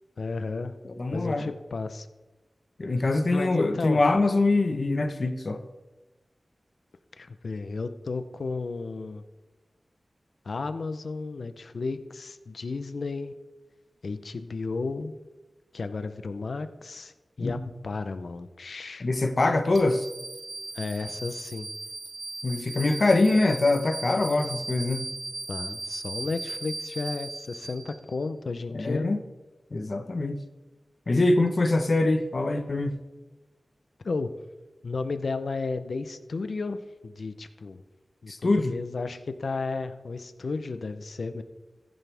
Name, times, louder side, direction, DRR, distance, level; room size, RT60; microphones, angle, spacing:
voice 1, 0.2-0.8 1.1-2.1 3.3-4.0 7.2-9.2 10.5-13.3 14.0-15.1 15.7-17.6 17.8-19.1 20.7-21.7 25.5-29.2 34.0-34.3 34.8-36.8 37.0-37.8 38.2-41.4, left 3 dB, 75° left, 10 dB, 0.8 m, -33 dB
voice 2, 0.8-1.5 2.8-5.6 17.4-17.6 19.0-20.1 22.4-25.1 28.7-29.2 29.7-30.4 31.1-33.0 38.3-38.7, left 2 dB, 55° left, 8 dB, 1.1 m, -24 dB
sound 1, 19.7-28.2, right 3 dB, 75° right, 1.5 m, -38 dB
14.5 x 10.5 x 3.5 m, 1.2 s
wide cardioid pair, 70°, 0 cm